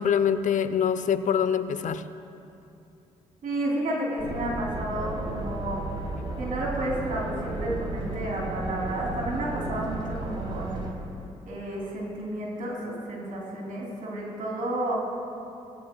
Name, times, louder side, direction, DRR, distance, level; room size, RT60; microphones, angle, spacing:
voice 1, 0.0-2.0, left 8 dB, 60° left, 12 dB, 0.6 m, -24 dB
voice 2, 3.4-5.8 6.4-10.8 11.5-15.0, right 1 dB, 70° right, -3 dB, 2.9 m, -31 dB
sound 1, 4.2-10.9, right 2 dB, 35° right, 3.0 m, -34 dB
17.5 x 15.5 x 2.2 m, 2.7 s
supercardioid pair, 55°, 15 cm